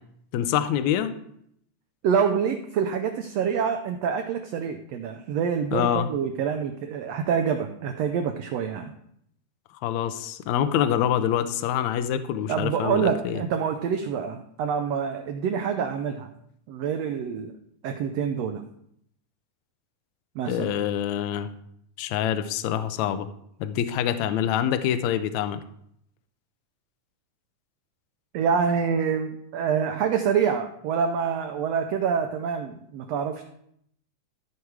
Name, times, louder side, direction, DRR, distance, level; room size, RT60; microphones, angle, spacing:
voice 1, 0.3-1.1 5.7-6.1 9.8-13.4 20.5-21.5 22.0-23.3 23.6-25.6, left 10 dB, 75° left, 10 dB, 1.8 m, -25 dB
voice 2, 2.0-8.9 12.5-16.3 16.7-17.6 17.8-18.6 20.3-20.7 28.3-33.4, right 7 dB, 90° right, 6 dB, 1.4 m, -26 dB
14.0 x 4.8 x 4.7 m, 0.71 s
omnidirectional pair, 3.7 m